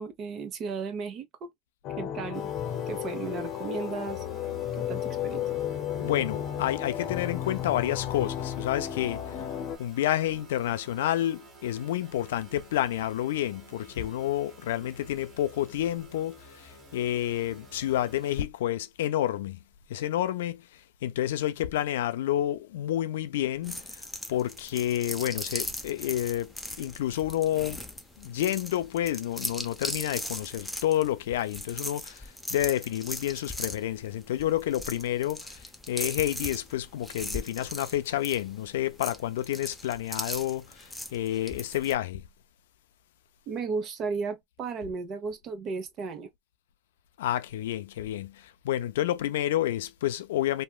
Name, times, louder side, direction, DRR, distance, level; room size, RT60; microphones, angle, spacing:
voice 1, 0.0-1.5 2.0-2.5 2.9-4.2 4.9-5.4 43.5-46.3, right 5 dB, 45° right, 0.9 m, -34 dB
sound 1, 1.8-9.8, left 10 dB, 55° left, 0.8 m, -33 dB
sound 2, 2.3-18.5, right 3 dB, 25° right, 1.4 m, -52 dB
voice 2, 6.0-9.2 9.8-16.4 16.9-19.6 19.9-20.6 21.0-23.8 24.3-26.5 26.8-27.8 28.2-32.2 32.5-35.4 35.9-40.6 41.1-42.2 47.2-48.3 48.6-50.6, left 12 dB, 85° left, 0.4 m, -29 dB
sound 3, 23.6-41.9, left 1 dB, 5° left, 0.6 m, -39 dB
3.1 x 2.2 x 2.3 m
supercardioid pair, 115°, 0 cm